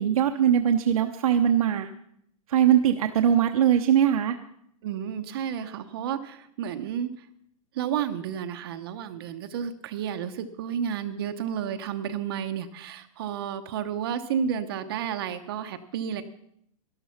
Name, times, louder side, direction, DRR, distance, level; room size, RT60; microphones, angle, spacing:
voice 1, 0.0-1.9 2.5-4.3, right 9 dB, 75° right, 5 dB, 0.9 m, -21 dB
voice 2, 4.8-7.3 7.7-16.2, right 8 dB, 40° right, 9 dB, 0.8 m, -31 dB
12.5 x 12.0 x 5.8 m, 0.71 s
supercardioid pair, 170°, 19 cm